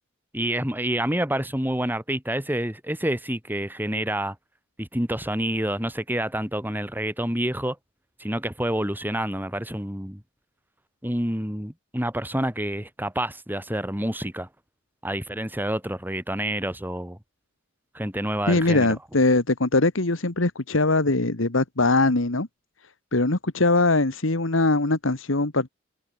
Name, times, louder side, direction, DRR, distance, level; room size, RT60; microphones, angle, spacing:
voice 1, 0.3-4.4 4.8-7.8 8.2-10.2 11.0-14.5 15.0-17.2 17.9-18.9, right 1 dB, 10° right, 5.3 m, -28 dB
voice 2, 18.5-22.5 23.1-25.7, left 2 dB, 70° left, 1.7 m, -21 dB
head